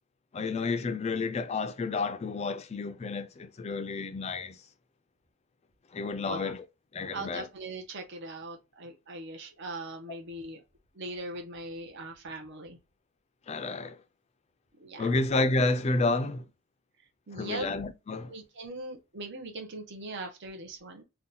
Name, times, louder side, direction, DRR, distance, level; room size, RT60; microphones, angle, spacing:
voice 1, 0.3-4.6 5.9-6.6 6.9-7.5 13.5-14.0 15.0-16.5 17.3-18.3, left 3 dB, 30° left, 0.3 m, -30 dB
voice 2, 7.1-10.6 11.0-12.8 14.8-15.1 17.3-17.7 18.3-21.0, right 2 dB, 50° right, 0.7 m, -40 dB
2.8 x 2.2 x 3.8 m
head